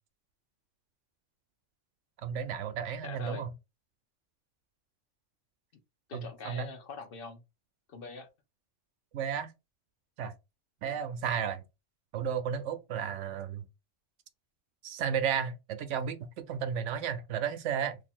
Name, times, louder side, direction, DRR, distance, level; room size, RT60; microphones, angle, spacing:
voice 1, 2.2-3.5 6.1-6.7 9.1-9.5 10.2-10.3 10.8-11.6 12.1-13.7 14.8-18.0, right 7 dB, 75° right, 1.0 m, -33 dB
voice 2, 3.0-3.5 6.1-7.4 7.9-8.3 10.8-11.0, left 4 dB, 55° left, 0.9 m, -43 dB
2.7 x 2.7 x 4.2 m
omnidirectional pair, 1.2 m